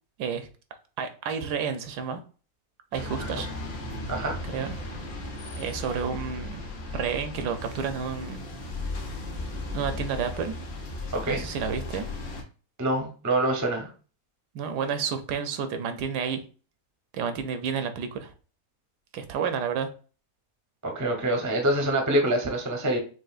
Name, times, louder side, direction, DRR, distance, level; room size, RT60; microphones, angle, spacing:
voice 1, 1.0-2.2 2.9-3.5 4.5-4.8 5.5-6.6 6.9-8.5 9.7-10.5 11.3-12.1 14.5-16.4 17.1-18.3 19.1-19.9, right 6 dB, 75° right, 8 dB, 1.2 m, -30 dB
sound 1, 2.9-12.4, left 2 dB, 60° left, 1.4 m, -36 dB
voice 2, 12.8-13.9 20.8-23.0, right 1 dB, 20° right, 3 dB, 0.5 m, -25 dB
6.1 x 2.5 x 2.4 m, 0.37 s
omnidirectional pair, 1.8 m